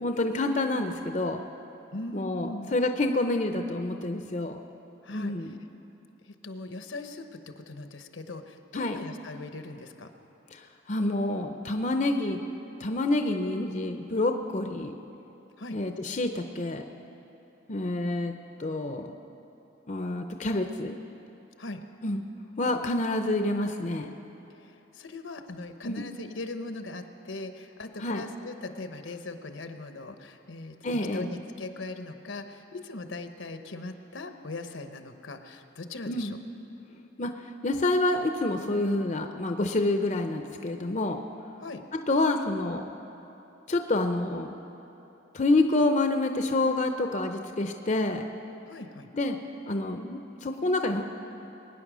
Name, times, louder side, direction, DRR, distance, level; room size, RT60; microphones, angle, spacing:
voice 1, 0.0-1.4 2.1-4.6 5.1-5.6 8.7-9.0 10.5-12.5 12.8-14.9 15.7-16.8 17.7-18.3 18.6-19.1 19.9-21.0 22.0-22.2 22.6-24.1 25.8-26.1 28.0-28.2 30.8-31.3 36.1-36.4 37.2-37.3 37.6-41.2 41.9-42.8 43.7-44.6 45.3-48.2 49.1-49.4 49.7-51.0, left 2 dB, 35° left, 5 dB, 0.6 m, -28 dB
voice 2, 1.9-2.7 5.0-5.6 6.2-10.1 15.6-15.8 21.6-21.8 24.6-36.4 41.6-41.8 48.7-49.1, left 2 dB, 75° left, 7 dB, 0.9 m, -40 dB
22.0 x 9.5 x 6.2 m, 3.0 s
head